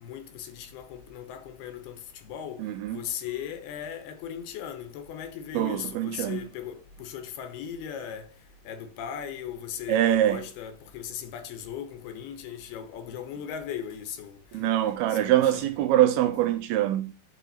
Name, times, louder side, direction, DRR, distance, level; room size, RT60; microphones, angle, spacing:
voice 1, 0.0-2.6 2.9-8.3 8.7-14.4 15.1-15.7, left 9 dB, 75° left, 2.8 m, -38 dB
voice 2, 2.6-3.0 5.5-6.4 9.9-10.4 14.5-17.1, right 12 dB, 80° right, 2.4 m, -24 dB
9.2 x 5.0 x 4.1 m
omnidirectional pair, 4.8 m